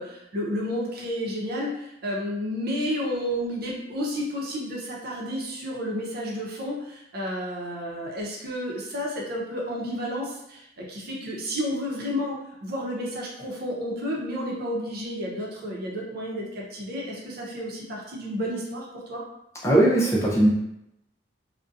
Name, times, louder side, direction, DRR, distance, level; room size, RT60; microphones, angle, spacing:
voice 1, 0.0-19.2, equal, 60° right, -3 dB, 0.6 m, -31 dB
voice 2, 19.6-20.5, right 1 dB, 15° left, -5 dB, 0.5 m, -19 dB
2.6 x 2.1 x 2.4 m, 0.81 s
head